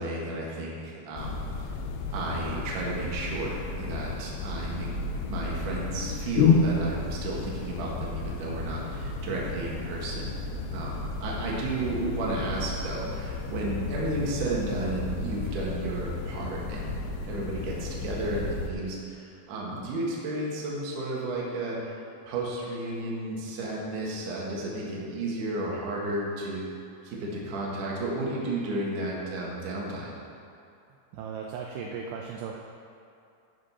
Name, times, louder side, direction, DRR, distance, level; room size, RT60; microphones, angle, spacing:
voice 1, 0.0-1.7 2.1-4.9 5.3-10.4 10.7-17.0 17.2-26.6 27.0-30.1, right 2 dB, 55° right, -4 dB, 2.6 m, -33 dB
sound 1, 1.2-18.7, left 4 dB, 80° left, 2.4 m, -32 dB
voice 2, 31.1-32.7, right 6 dB, 80° right, 0 dB, 2.7 m, -37 dB
14.0 x 5.1 x 5.6 m, 2.5 s
omnidirectional pair, 5.2 m